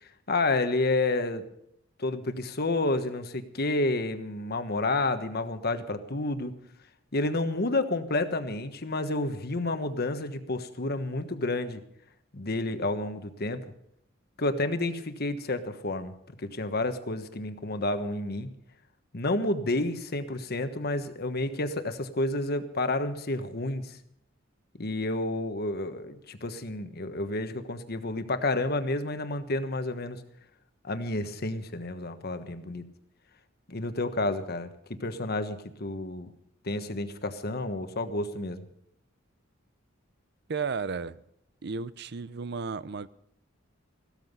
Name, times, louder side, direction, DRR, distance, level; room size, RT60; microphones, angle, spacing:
voice 1, 0.0-1.4 2.0-6.5 7.1-11.8 12.3-13.7 14.4-16.1 16.4-18.5 19.1-24.0 24.8-30.2 30.8-32.8 33.7-36.3 36.6-38.6, left 2 dB, 55° left, 1.3 m, -30 dB
voice 2, 40.5-41.2 41.6-43.1, right 5 dB, 60° right, 0.6 m, -33 dB
16.0 x 13.5 x 5.5 m
head